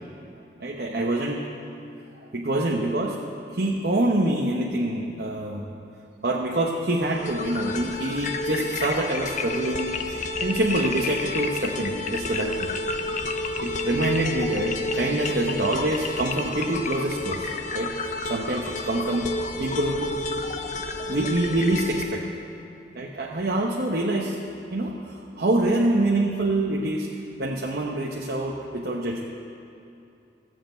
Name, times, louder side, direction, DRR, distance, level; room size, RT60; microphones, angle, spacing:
voice 1, 0.6-1.4 2.3-3.2 3.5-5.7 6.2-12.7 13.6-17.9 18.3-19.3 19.6-20.1 21.1-22.2 22.9-24.4 24.7-27.1 27.4-29.3, right 1 dB, 55° right, -2 dB, 1.0 m, -26 dB
sound 1, 7.0-22.0, left 2 dB, 40° left, 0.7 m, -30 dB
14.5 x 7.6 x 9.0 m, 2.8 s
head